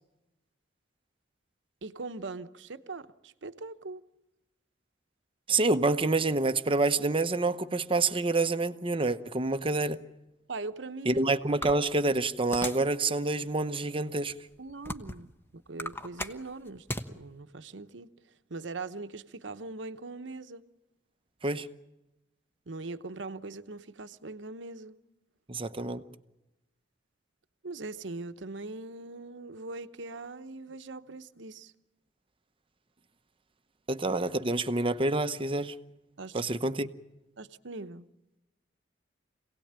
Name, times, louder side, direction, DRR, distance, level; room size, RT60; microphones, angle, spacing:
voice 1, 1.8-4.0 10.5-11.2 14.6-18.1 18.5-20.6 22.7-25.0 27.6-31.7 36.2-36.4 37.4-38.1, right 3 dB, 80° right, 0.9 m, -41 dB
voice 2, 5.5-10.0 11.0-14.3 21.4-21.7 25.5-26.0 33.9-35.7 36.3-36.9, right 2 dB, 30° right, 0.9 m, -27 dB
sound 1, 11.6-12.9 13.5-13.6 14.3-15.3 15.7-17.1, left 1 dB, 10° left, 1.1 m, -37 dB
26.5 x 18.0 x 8.8 m
head